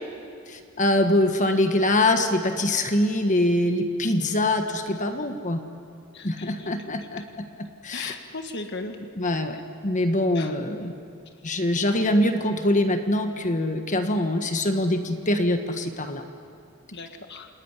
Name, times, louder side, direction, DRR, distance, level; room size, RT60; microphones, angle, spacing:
voice 1, 0.5-5.6 6.2-7.4 7.8-8.1 9.1-9.6 9.8-10.9 11.4-16.2, left 1 dB, 35° left, 6 dB, 1.4 m, -24 dB
voice 2, 6.1-6.7 7.9-9.0 10.4-10.5 16.9-17.5, left 3 dB, 55° left, 6 dB, 1.6 m, -37 dB
28.5 x 20.5 x 9.8 m, 2.4 s
head